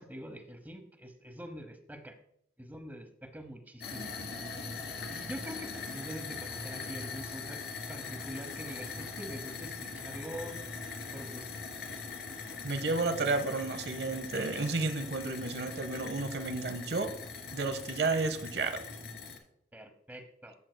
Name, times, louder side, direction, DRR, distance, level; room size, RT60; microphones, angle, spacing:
voice 1, 0.0-2.2 2.6-4.2 4.5-7.6 7.9-10.6 11.1-11.5 19.7-20.5, equal, 10° right, 7 dB, 0.9 m, -45 dB
sound 1, 3.8-19.4, left 4 dB, 70° left, 1.8 m, -41 dB
voice 2, 12.6-17.1 17.5-18.8, right 3 dB, 70° right, 9 dB, 0.8 m, -32 dB
12.0 x 7.7 x 2.2 m, 0.72 s
head